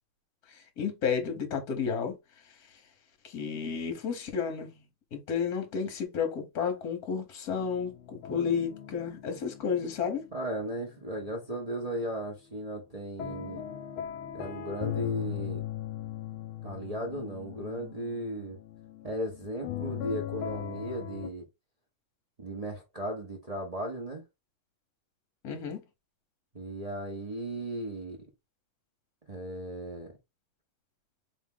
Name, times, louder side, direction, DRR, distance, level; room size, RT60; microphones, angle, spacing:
voice 1, 0.5-2.1 3.2-4.8 5.1-10.3 25.4-25.8, left 6 dB, 50° left, 1.5 m, -32 dB
sound 1, 7.5-11.5 11.8-21.3, left 11 dB, 80° left, 1.4 m, -40 dB
voice 2, 10.3-13.8 14.3-15.6 16.6-18.6 19.0-21.4 22.4-24.2 26.5-28.3 29.3-30.1, right 1 dB, 40° right, 0.5 m, -36 dB
3.5 x 3.5 x 3.5 m
omnidirectional pair, 2.3 m